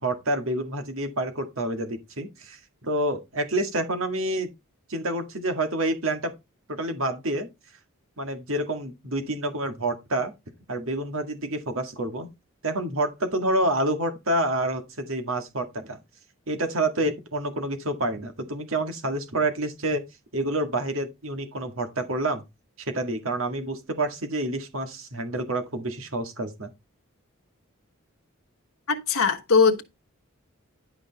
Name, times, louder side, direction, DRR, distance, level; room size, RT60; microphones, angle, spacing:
voice 1, 0.0-4.5 4.9-6.3 6.7-7.5 8.2-10.3 10.7-12.3 12.6-16.0 16.5-20.0 20.3-22.4 22.8-26.7, right 1 dB, 75° right, 1.9 m, -28 dB
voice 2, 28.9-29.8, left 5 dB, 80° left, 1.2 m, -20 dB
11.0 x 5.2 x 4.0 m
head